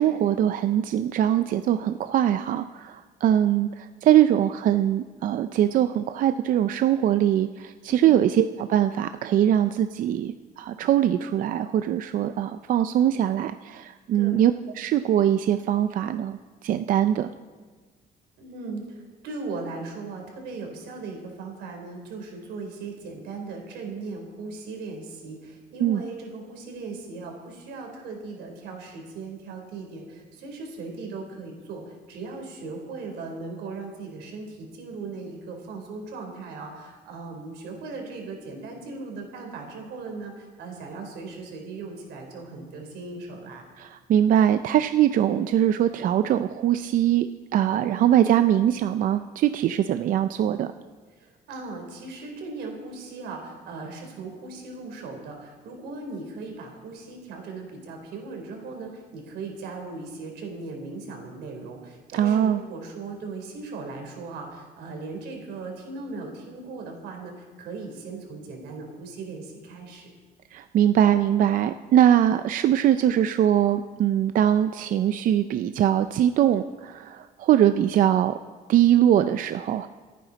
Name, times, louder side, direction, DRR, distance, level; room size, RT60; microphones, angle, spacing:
voice 1, 0.0-16.4 16.6-17.3 25.8-26.0 43.8-50.7 62.1-62.6 70.5-78.3 78.7-79.9, right 11 dB, 55° right, 10 dB, 0.4 m, -22 dB
voice 2, 7.9-8.2 14.1-14.4 18.4-43.7 47.9-48.1 51.2-70.1, right 3 dB, 90° right, 2 dB, 3.7 m, -38 dB
27.5 x 9.3 x 4.0 m, 1.4 s
cardioid pair, 155°, 17 cm